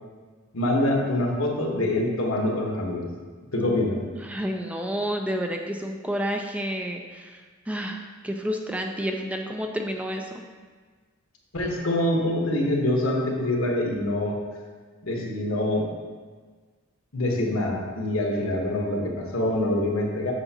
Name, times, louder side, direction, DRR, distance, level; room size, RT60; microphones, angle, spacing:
voice 1, 0.5-3.1 3.5-4.0 11.5-14.4 15.0-15.9 17.1-20.3, left 1 dB, 85° left, 0 dB, 1.2 m, -25 dB
voice 2, 4.1-10.3, equal, 5° right, 3 dB, 0.3 m, -30 dB
8.0 x 5.8 x 2.8 m, 1.5 s
head